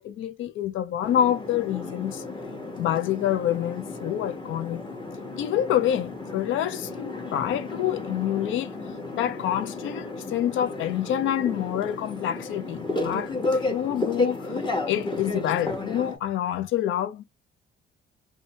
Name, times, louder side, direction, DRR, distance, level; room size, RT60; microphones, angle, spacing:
voice 1, 0.0-2.2 2.8-4.8 5.4-8.8 9.1-14.5 14.9-17.2, left 11 dB, 80° left, 0.5 m, -27 dB
sound 1, 1.0-16.2, left 2 dB, 25° left, 1.0 m, -33 dB
2.7 x 2.2 x 2.8 m
cardioid pair, 90°, 20 cm